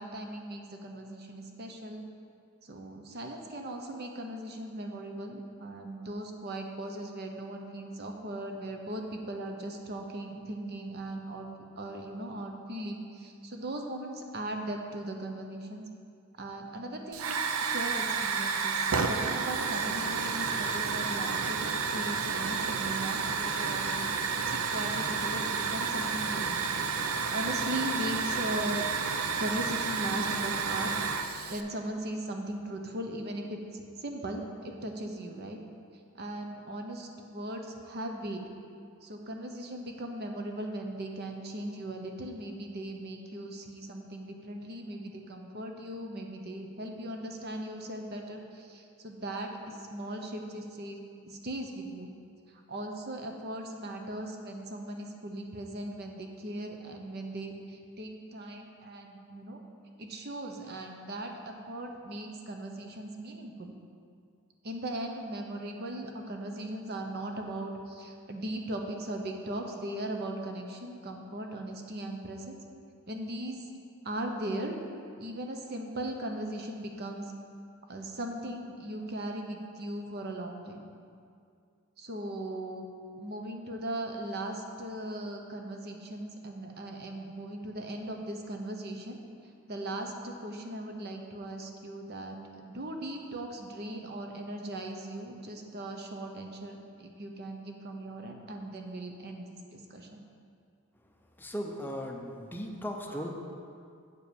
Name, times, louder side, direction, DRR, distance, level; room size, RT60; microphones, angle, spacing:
voice 1, 0.0-2.0 2.6-11.5 11.8-15.8 16.4-21.7 21.9-26.8 27.1-28.9 29.4-30.9 31.5-35.6 36.2-38.4 39.0-52.1 52.5-59.6 60.0-63.7 64.6-72.6 73.1-73.7 74.0-74.8 75.2-77.3 77.9-80.9 82.0-82.9 83.2-89.2 89.7-100.2 103.1-103.3, right 1 dB, 50° right, 3 dB, 0.8 m, -38 dB
Hiss / Fire, 17.1-31.6, right 5 dB, 75° right, 0.5 m, -31 dB
voice 2, 101.4-103.3, equal, 10° left, 2 dB, 0.6 m, -37 dB
8.1 x 4.6 x 6.9 m, 2.3 s
head